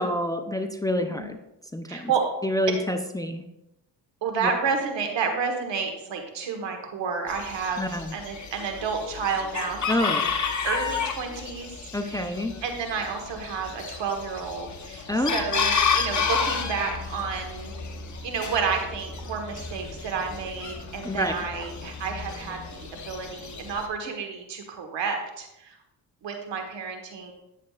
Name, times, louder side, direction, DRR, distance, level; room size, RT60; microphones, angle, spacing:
voice 1, 0.0-1.4 1.7-2.1 2.4-3.5 4.4-4.5 7.8-8.1 9.9-10.2 11.9-12.5 15.1-15.4 21.0-21.3, left 1 dB, 10° left, 6 dB, 0.6 m, -27 dB
voice 2, 1.0-1.3 1.9-2.2 2.7-2.8 4.2-10.3 10.6-12.2 12.6-17.7 18.2-25.8 26.2-27.3, right 5 dB, 90° right, 4 dB, 1.5 m, -30 dB
Chicken rooster, 7.3-23.9, left 6 dB, 45° left, 1.0 m, -31 dB
9.8 x 7.4 x 2.4 m, 0.88 s
cardioid pair, 80°, 42 cm